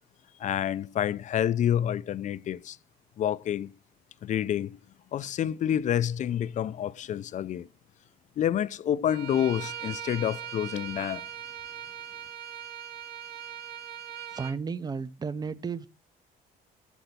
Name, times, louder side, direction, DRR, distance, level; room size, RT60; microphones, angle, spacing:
voice 1, 0.4-2.8 3.2-3.7 4.2-4.8 5.1-7.7 8.4-11.2, left 10 dB, 45° left, 0.5 m, -28 dB
Bowed string instrument, 9.1-14.6, right 10 dB, 70° right, 0.8 m, -40 dB
voice 2, 14.3-15.9, right 5 dB, 25° right, 0.7 m, -33 dB
8.1 x 5.2 x 5.8 m
cardioid pair, 110°, 17 cm